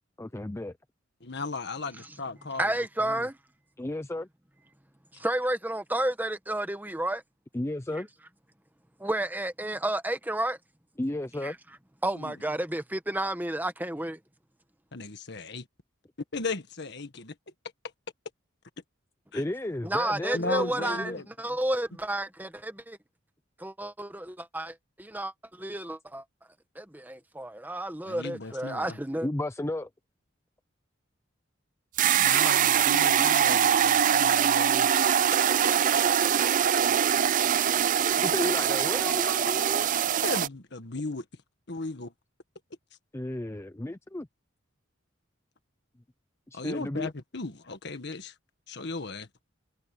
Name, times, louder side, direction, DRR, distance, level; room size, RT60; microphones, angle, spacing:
voice 1, 0.2-0.8 3.8-4.3 7.5-8.1 11.0-11.6 19.3-21.2 29.2-29.9 38.2-39.9 43.1-44.3 46.5-47.1, left 1 dB, 15° left, 0.5 m, -33 dB
voice 2, 1.2-2.7 3.0-3.3 5.1-5.2 12.1-12.3 14.9-15.6 16.3-17.3 19.3-19.4 20.3-21.6 28.0-29.0 32.2-34.9 40.2-41.2 41.7-42.1 46.5-48.3 48.7-49.3, left 3 dB, 60° left, 1.6 m, -36 dB
voice 3, 2.6-3.4 5.2-7.2 9.0-10.6 11.4-11.5 12.0-14.2 19.8-21.1 21.4-23.0 23.6-26.2 26.7-29.3, right 1 dB, 10° right, 1.2 m, -31 dB
sound 1, 32.0-40.5, right 9 dB, 40° right, 0.4 m, -23 dB
head